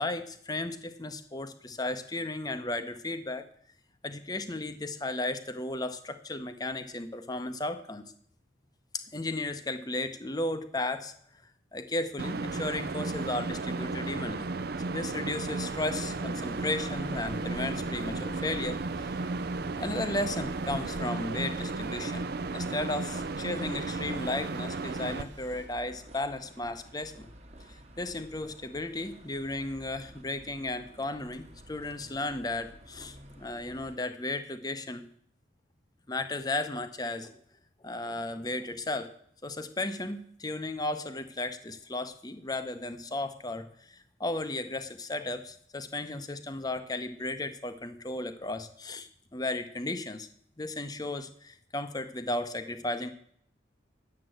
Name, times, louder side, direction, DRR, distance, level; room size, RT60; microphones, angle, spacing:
voice 1, 0.0-3.5 4.0-8.1 8.9-11.1 11.7-14.5 14.9-19.2 19.8-22.3 22.5-27.3 27.7-35.0 36.1-37.4 37.8-39.1 39.4-50.3 50.6-53.1, left 2 dB, 20° left, 10 dB, 0.7 m, -35 dB
sound 1, 12.2-25.2, right 3 dB, 50° right, 0.5 m, -34 dB
sound 2, 15.3-25.7, right 1 dB, 70° right, 1.5 m, -51 dB
sound 3, 15.9-34.0, right 1 dB, 35° right, 1.3 m, -51 dB
9.8 x 7.5 x 7.7 m, 0.66 s
head